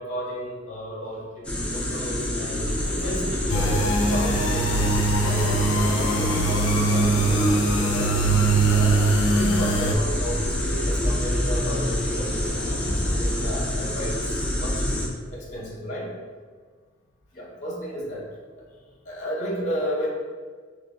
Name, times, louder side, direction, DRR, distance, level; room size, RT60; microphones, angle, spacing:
voice 1, 0.0-8.1 8.6-9.1 9.3-14.8 15.3-16.1 17.3-18.3 19.0-20.1, equal, 40° left, -3 dB, 0.9 m, -33 dB
sound 1, 1.4-15.1, left 1 dB, 5° left, 0.6 m, -27 dB
sound 2, 2.6-13.6, equal, 15° right, 1.4 m, -33 dB
sound 3, 3.5-10.0, right 2 dB, 70° left, 0.5 m, -22 dB
3.2 x 3.0 x 3.8 m, 1.5 s
head